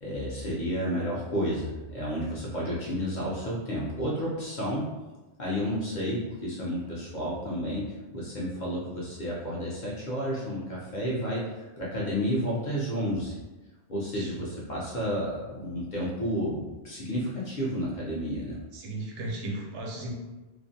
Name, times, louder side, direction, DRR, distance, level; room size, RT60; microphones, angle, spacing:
voice 1, 0.0-4.9 5.4-13.4 13.9-18.6, equal, 50° left, -6 dB, 0.6 m, -31 dB
voice 2, 18.7-20.1, right 2 dB, 85° right, -1 dB, 0.9 m, -35 dB
2.4 x 2.1 x 2.6 m, 1.2 s
omnidirectional pair, 1.2 m